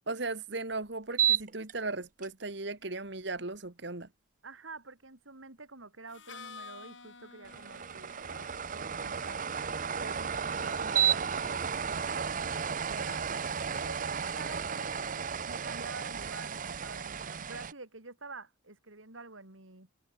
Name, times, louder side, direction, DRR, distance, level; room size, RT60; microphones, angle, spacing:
voice 1, 0.1-4.1, right 3 dB, 60° right, 1.8 m, -37 dB
sound 1, 1.1-1.7 2.2-2.3 7.5-17.7, right 7 dB, 40° right, 0.7 m, -33 dB
voice 2, 4.4-9.4 10.0-19.9, right 3 dB, 80° right, 3.3 m, -48 dB
Harmonica, 6.1-11.8, left 4 dB, 70° left, 7.1 m, -53 dB
head